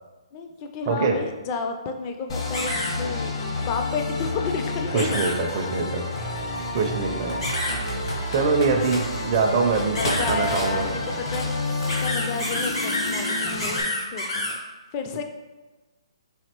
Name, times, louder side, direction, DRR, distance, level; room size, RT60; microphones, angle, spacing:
voice 1, 0.3-5.4 6.0-6.1 7.1-8.2 9.3-11.7 12.0-14.5 14.9-15.2, left 4 dB, 30° left, 5 dB, 0.4 m, -32 dB
voice 2, 0.9-1.2 4.9-6.1 6.7-7.4 8.3-10.0 10.3-10.9, right 4 dB, 35° right, 2 dB, 0.4 m, -23 dB
sound 1, 2.3-13.8, left 2 dB, 50° left, 0.8 m, -30 dB
sound 2, 2.5-2.9 5.0-5.3 7.4-7.8 10.0-10.3 11.9-14.5, left 1 dB, 85° left, 1.4 m, -28 dB
Computer keyboard, 4.5-4.6 6.2-6.4 7.3-9.1 9.7-12.4, equal, 65° left, 1.3 m, -32 dB
4.1 x 2.8 x 2.9 m, 1.2 s
hypercardioid pair, 140°, 3 cm